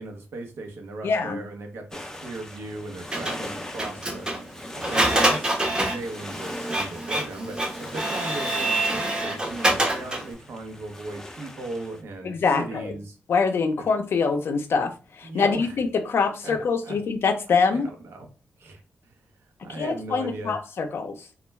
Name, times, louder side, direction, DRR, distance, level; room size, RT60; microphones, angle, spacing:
voice 1, 0.0-4.3 4.8-5.5 5.8-13.2 13.8-13.9 15.2-15.8 16.4-16.6 16.8-17.0 17.7-18.3 18.6-20.5, right 2 dB, 75° right, 0.7 m, -37 dB
voice 2, 1.0-1.4 12.2-12.9 13.3-17.9 19.7-21.3, left 5 dB, 65° left, 0.5 m, -24 dB
sound 1, 1.9-12.0, left 1 dB, 15° left, 0.4 m, -40 dB
Printer, 3.1-10.3, right 1 dB, 20° right, 0.7 m, -26 dB
2.3 x 2.2 x 3.1 m
cardioid pair, 85°, 4 cm